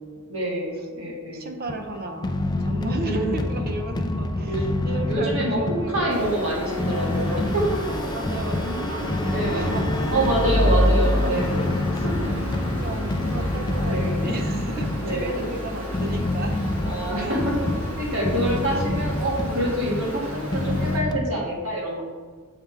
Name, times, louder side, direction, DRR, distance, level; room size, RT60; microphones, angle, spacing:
voice 1, 0.3-1.5 2.2-3.4 4.5-4.7 5.0-5.6 5.9-7.8 9.3-9.7 10.1-11.6 12.0-12.1 13.8-14.3 15.0-15.4 16.9-17.4 18.0-22.0, right 1 dB, 65° right, -3 dB, 1.8 m, -26 dB
voice 2, 1.3-6.3 8.1-11.4 11.9-12.1 12.4-16.6 17.2-17.4 18.6-18.8, right 2 dB, 45° right, 5 dB, 0.8 m, -34 dB
sound 1, 1.7-21.2, left 1 dB, 20° left, 0.4 m, -28 dB
Stream, 6.1-21.0, left 1 dB, 85° right, 2.0 m, -29 dB
7.3 x 5.8 x 3.4 m, 1.5 s
head